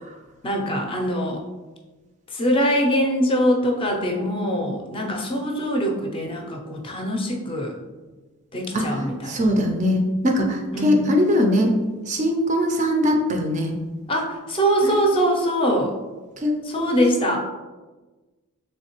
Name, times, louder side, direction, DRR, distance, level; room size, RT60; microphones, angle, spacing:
voice 1, 0.4-1.4 2.3-7.7 8.5-9.4 10.7-11.0 14.1-15.9 16.6-17.4, equal, 25° left, 0 dB, 0.5 m, -23 dB
voice 2, 9.3-11.7 12.1-13.8 14.8-14.9 16.4-17.0, left 1 dB, 35° right, 3 dB, 0.4 m, -21 dB
3.5 x 3.2 x 2.9 m, 1.2 s
head